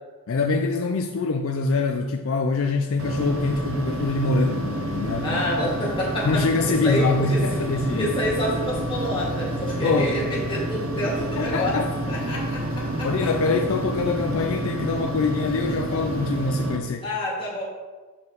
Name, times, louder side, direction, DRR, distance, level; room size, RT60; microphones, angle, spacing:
voice 1, 0.3-5.4 6.2-8.1 9.8-10.1 11.4-11.9 13.0-17.0, left 3 dB, 60° left, 4 dB, 0.4 m, -24 dB
sound 1, 3.0-16.8, right 1 dB, 65° right, 0.8 m, -29 dB
voice 2, 5.2-7.4 8.0-11.8 12.1-13.3 17.0-17.6, equal, 25° left, -6 dB, 2.3 m, -28 dB
7.0 x 5.4 x 3.9 m, 1.3 s
head